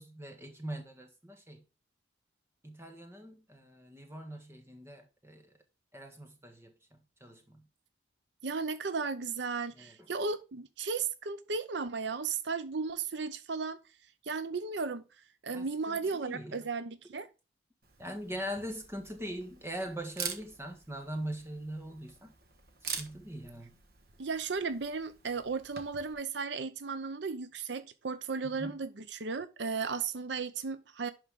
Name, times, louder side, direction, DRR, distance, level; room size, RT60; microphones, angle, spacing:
voice 1, 0.0-1.6 2.6-5.6 5.9-6.8 7.2-7.7 9.7-10.1 15.5-16.7 18.0-22.3 23.0-23.7 28.4-28.8, equal, 15° right, 1.5 m, -42 dB
voice 2, 8.4-13.8 14.3-15.0 15.4-17.3 24.2-31.1, right 4 dB, 70° right, 0.7 m, -35 dB
Camera, 17.8-26.1, right 6 dB, 55° right, 1.4 m, -45 dB
11.0 x 4.4 x 3.6 m
head